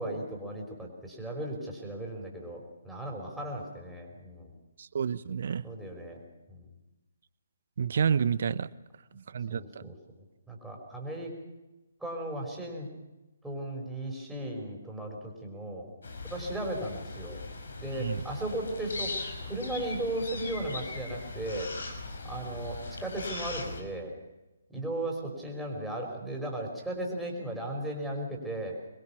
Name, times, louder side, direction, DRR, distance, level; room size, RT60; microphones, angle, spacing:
voice 1, 0.0-4.5 5.6-6.7 9.5-9.9 10.5-11.3 12.0-12.9 13.4-15.9 16.2-17.4 17.8-19.1 19.4-21.7 22.2-24.1 24.7-28.7, right 1 dB, 5° right, -2 dB, 5.2 m, -36 dB
voice 2, 4.8-5.7 7.8-8.7 9.1-9.9 17.9-18.2, right 7 dB, 55° right, 16 dB, 0.9 m, -30 dB
sound 1, 16.0-23.8, left 3 dB, 70° left, 5.3 m, -39 dB
24.5 x 22.0 x 5.9 m, 1.1 s
figure-of-eight pair, 140°, 0 cm